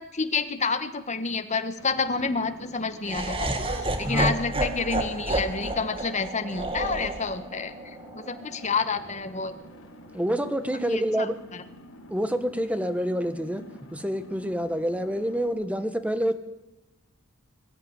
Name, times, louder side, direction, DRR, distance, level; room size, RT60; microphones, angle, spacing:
voice 1, 0.0-7.7 8.1-9.5 10.9-11.3 11.5-11.6, left 4 dB, 35° left, 10 dB, 1.4 m, -29 dB
sound 1, 1.8-15.5, left 1 dB, 80° left, 4.2 m, -48 dB
Laughter, 3.0-9.2, right 2 dB, 25° right, 2.0 m, -31 dB
voice 2, 4.0-4.4 10.1-11.4 12.1-13.6 13.9-16.4, equal, 5° right, 9 dB, 1.5 m, -27 dB
22.5 x 13.0 x 9.7 m, 0.97 s
head